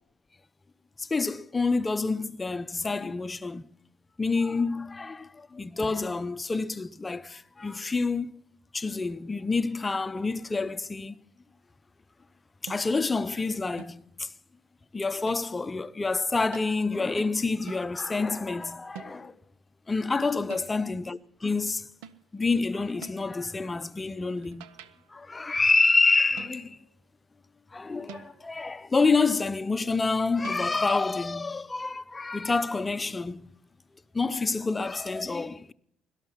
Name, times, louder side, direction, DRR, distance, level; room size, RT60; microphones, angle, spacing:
voice 1, 1.0-3.7 4.2-8.3 8.7-11.2 12.6-14.3 14.9-19.4 19.9-21.9 22.3-24.7 25.1-26.8 27.7-33.5 34.1-35.7, left 3 dB, 25° left, 0.6 m, -28 dB
sound 1, 12.7-13.1 13.8-14.2 15.3-15.7 16.5-16.8 17.7-18.0 19.0-19.4 20.5-20.9 22.0-22.4 23.0-23.4 24.3-25.2 26.4-26.9 28.1-28.6 30.4-30.7, right 9 dB, 85° right, 0.7 m, -47 dB
17.5 x 12.5 x 5.7 m
supercardioid pair, 70°, 0 cm